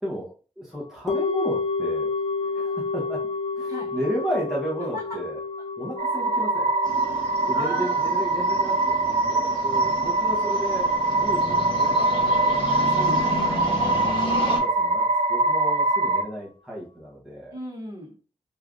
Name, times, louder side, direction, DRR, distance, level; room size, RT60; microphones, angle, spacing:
voice 1, 0.0-2.1 2.4-3.2 3.6-5.4 5.8-6.7 7.5-12.5 13.8-17.6, equal, 5° right, -5 dB, 0.8 m, -33 dB
sound 1, 1.1-11.4 11.6-11.7, left 4 dB, 85° left, 0.7 m, -31 dB
sound 2, 6.0-16.2, right 2 dB, 80° right, 0.6 m, -23 dB
sound 3, 6.8-14.6, left 1 dB, 45° left, 1.0 m, -33 dB
voice 2, 7.0-8.1 12.8-13.8 17.5-18.2, left 1 dB, 30° right, -2 dB, 1.1 m, -36 dB
3.2 x 2.4 x 3.6 m, 0.38 s
wide cardioid pair, 175°, 12 cm